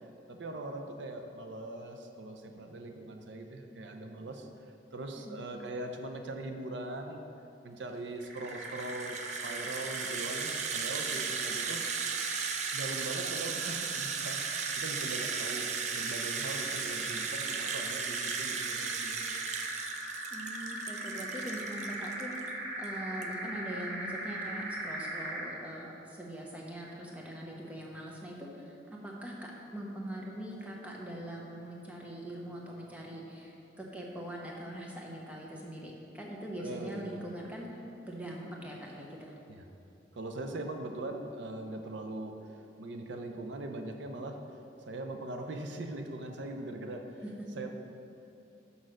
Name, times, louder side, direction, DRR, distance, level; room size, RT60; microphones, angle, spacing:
voice 1, 0.3-4.5 4.9-7.2 7.6-11.8 12.7-14.4 14.8-19.3 36.6-37.1 39.5-39.6 40.1-42.3 42.8-44.4 44.9-47.2 47.6-47.7, right 2 dB, 85° right, 4 dB, 0.6 m, -41 dB
sound 1, 8.2-25.6, right 1 dB, 70° right, 1.0 m, -39 dB
Rattle (instrument), 8.4-22.5 22.8-22.9 23.2-23.3, right 7 dB, 40° right, 0.3 m, -37 dB
voice 2, 20.3-39.3 47.2-47.3, right 1 dB, 10° right, -2 dB, 0.8 m, -42 dB
6.3 x 5.4 x 6.3 m, 2.8 s
head